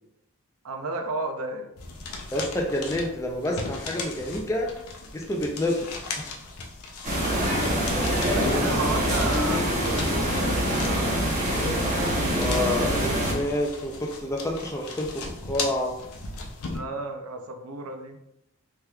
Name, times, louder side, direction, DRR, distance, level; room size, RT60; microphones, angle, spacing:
voice 1, 0.6-1.7 7.7-11.2 16.7-18.2, right 2 dB, 80° right, 5 dB, 0.5 m, -33 dB
sound 1, 1.8-16.8, left 3 dB, 85° left, 0.6 m, -38 dB
voice 2, 2.3-4.7 5.1-5.9 6.2-6.3 12.3-15.9, left 1 dB, 15° left, 0 dB, 0.4 m, -28 dB
sound 2, 7.0-13.3, equal, 35° right, 0.7 m, -24 dB
3.4 x 2.9 x 2.3 m, 0.84 s
head